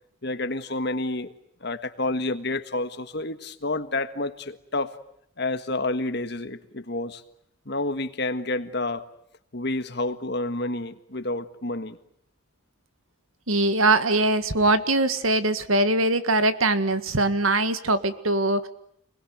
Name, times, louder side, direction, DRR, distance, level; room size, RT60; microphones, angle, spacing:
voice 1, 0.2-1.3 1.6-5.0 5.4-7.2 7.6-9.1 9.5-12.0, left 2 dB, 55° left, 1.6 m, -29 dB
voice 2, 13.5-18.7, right 2 dB, 85° right, 1.9 m, -22 dB
28.0 x 21.5 x 9.4 m
head